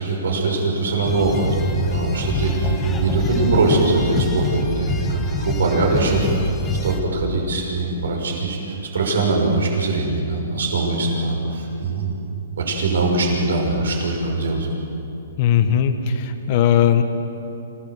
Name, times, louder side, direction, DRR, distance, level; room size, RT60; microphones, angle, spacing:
voice 1, 0.0-12.1 12.6-14.7, right 3 dB, 80° right, 0 dB, 6.0 m, -22 dB
sound 1, 1.0-7.0, left 1 dB, 15° left, 1.7 m, -24 dB
voice 2, 15.4-17.0, left 9 dB, 40° left, 8 dB, 1.4 m, -18 dB
27.0 x 17.5 x 7.9 m, 2.8 s
hypercardioid pair, 155°, 0 cm